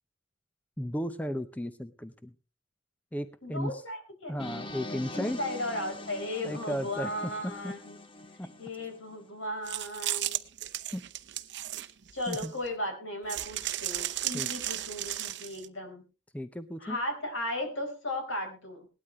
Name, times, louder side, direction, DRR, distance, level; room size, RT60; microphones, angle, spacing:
voice 1, 0.8-2.3 3.1-3.7 4.3-5.4 6.4-7.7 8.4-8.5 10.9-11.0 12.3-12.5 14.3-14.5 16.3-17.0, equal, 10° left, 11 dB, 0.6 m, -35 dB
voice 2, 3.4-4.7 5.1-8.0 8.4-10.4 12.1-16.0 16.8-18.9, left 1 dB, 75° left, 4 dB, 4.4 m, -36 dB
sound 1, 4.4-9.3, left 2 dB, 25° left, 0.9 m, -43 dB
sound 2, 9.7-12.7 13.3-15.7, right 14 dB, 60° right, 0.8 m, -34 dB
18.5 x 12.5 x 3.1 m, 0.32 s
head